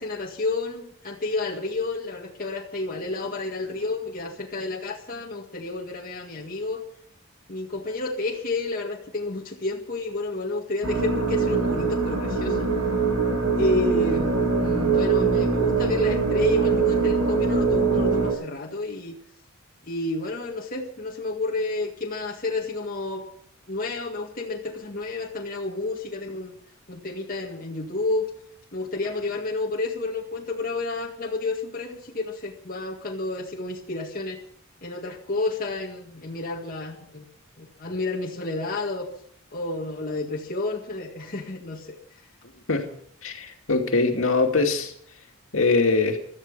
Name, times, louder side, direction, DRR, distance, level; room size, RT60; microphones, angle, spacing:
voice 1, 0.0-6.8 7.5-12.7 13.6-19.2 19.9-23.3 23.7-26.6 26.9-28.3 28.7-34.4 34.8-37.3 37.6-39.1 39.5-42.0, left 2 dB, 40° left, -1 dB, 1.9 m, -30 dB
sound 1, 10.8-18.3, right 4 dB, 90° right, 6.1 m, -23 dB
voice 2, 43.2-44.9 45.5-46.2, left 3 dB, 65° left, 3 dB, 2.5 m, -22 dB
16.5 x 13.0 x 5.6 m, 0.63 s
head